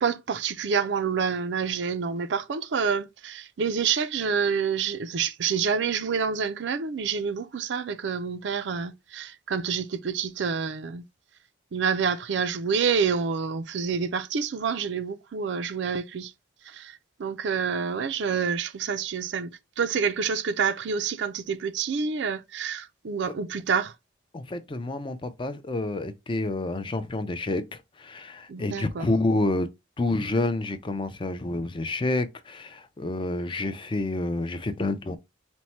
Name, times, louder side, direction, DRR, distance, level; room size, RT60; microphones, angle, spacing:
voice 1, 0.0-11.0 11.7-16.3 16.7-23.9 28.5-29.1, right 6 dB, 65° right, 0.4 m, -28 dB
voice 2, 24.3-27.6 28.0-29.7 30.0-35.2, left 2 dB, 25° left, 0.4 m, -28 dB
4.4 x 2.1 x 4.1 m
head